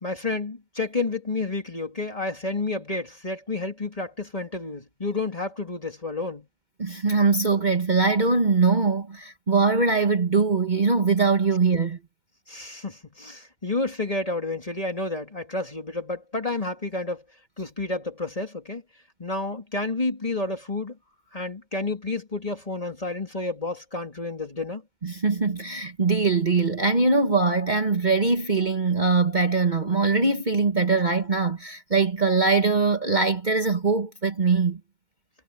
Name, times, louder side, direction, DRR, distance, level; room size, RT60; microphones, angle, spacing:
voice 1, 0.0-6.5 12.5-17.2 17.6-18.8 19.2-21.0 21.3-24.8, left 3 dB, 25° left, 2.8 m, -30 dB
voice 2, 6.8-12.0 25.0-34.8, right 4 dB, 30° right, 1.6 m, -22 dB
omnidirectional pair, 1.5 m